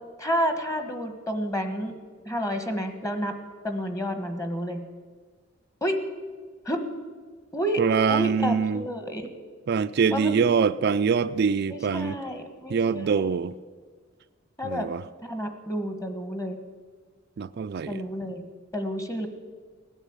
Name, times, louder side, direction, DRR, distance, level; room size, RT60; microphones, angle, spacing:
voice 1, 0.2-1.9 2.2-3.4 3.6-4.8 5.8-6.0 6.6-6.8 7.5-7.8 8.1-9.3 10.1-10.5 11.7-13.4 14.6-14.9 15.2-16.6 17.9-18.4 18.7-19.3, equal, 15° left, 8 dB, 1.4 m, -30 dB
voice 2, 7.8-8.8 9.7-12.2 12.7-13.6 14.6-15.0 17.4-18.0, right 6 dB, 55° right, 11 dB, 0.4 m, -24 dB
16.0 x 9.9 x 8.8 m, 1.5 s
head